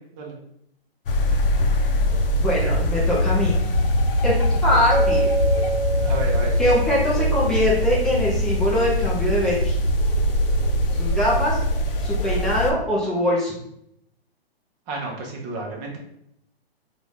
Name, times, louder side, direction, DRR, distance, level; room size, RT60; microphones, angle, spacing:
sound 1, 1.1-12.7, left 1 dB, 60° left, 0.6 m, -22 dB
voice 1, 2.4-3.6 4.2-4.3 4.6-5.3 6.6-9.8 10.9-11.6 12.0-13.5, left 1 dB, ahead, -6 dB, 0.4 m, -22 dB
Mallet percussion, 4.9-7.9, right 4 dB, 85° right, 0.6 m, -27 dB
voice 2, 6.0-6.6 14.9-16.0, right 2 dB, 25° right, 0 dB, 0.8 m, -31 dB
3.8 x 2.4 x 3.4 m, 0.75 s
hypercardioid pair, 135°, 31 cm